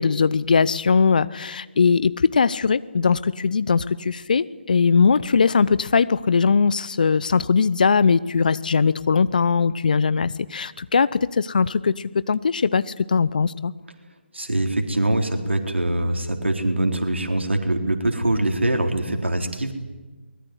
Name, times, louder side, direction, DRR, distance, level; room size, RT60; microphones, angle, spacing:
voice 1, 0.0-11.9 12.3-13.7, left 5 dB, 40° left, 17 dB, 0.8 m, -20 dB
voice 2, 14.3-19.7, right 1 dB, 70° right, 4 dB, 4.0 m, -23 dB
23.5 x 20.5 x 9.7 m, 1.2 s
figure-of-eight pair, 150°, 7 cm